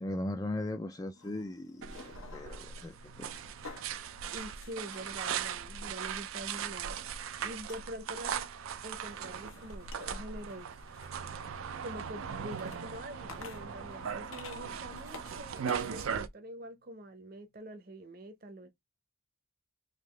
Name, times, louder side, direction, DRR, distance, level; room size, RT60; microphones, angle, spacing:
voice 1, 0.0-3.3, left 1 dB, 15° left, 0.3 m, -38 dB
sound 1, 1.1-16.1, left 4 dB, 85° left, 1.0 m, -53 dB
sound 2, 1.8-16.3, right 7 dB, 80° right, 0.4 m, -39 dB
voice 2, 4.3-7.0 7.4-8.5 8.8-10.7 11.8-18.7, right 1 dB, 45° right, 0.7 m, -45 dB
Bowed string instrument, 11.2-17.2, left 4 dB, 50° left, 0.6 m, -58 dB
3.7 x 2.8 x 3.3 m
head